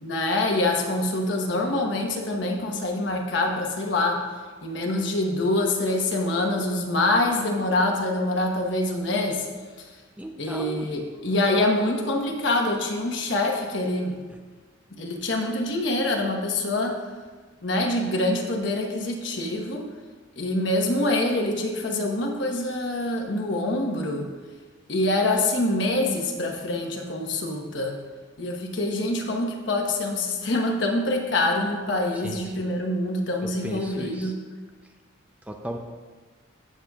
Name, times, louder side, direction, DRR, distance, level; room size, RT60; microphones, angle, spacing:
voice 1, 0.0-4.2 4.6-9.5 10.4-14.2 14.9-17.0 17.6-19.9 20.4-24.3 24.9-28.0 28.4-34.4, left 2 dB, 60° left, 2 dB, 1.2 m, -25 dB
voice 2, 10.2-10.9 32.1-32.5 33.4-34.3 35.5-35.8, right 1 dB, 5° right, 2 dB, 0.5 m, -35 dB
15.5 x 6.9 x 2.4 m, 1.4 s
head